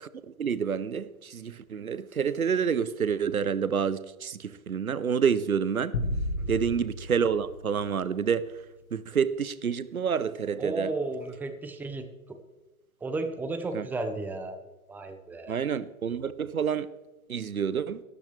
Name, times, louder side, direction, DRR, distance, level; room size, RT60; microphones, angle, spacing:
voice 1, 0.0-5.9 6.5-8.5 8.9-10.9 13.7-13.9 15.5-16.9 17.3-18.0, right 7 dB, 85° right, 0.8 m, -28 dB
sound 1, 5.9-8.4, left 1 dB, 80° left, 1.7 m, -33 dB
voice 2, 10.6-12.4 13.0-14.6 14.9-15.6, right 3 dB, 5° right, 0.7 m, -34 dB
13.0 x 12.5 x 3.3 m
figure-of-eight pair, 110°, 42 cm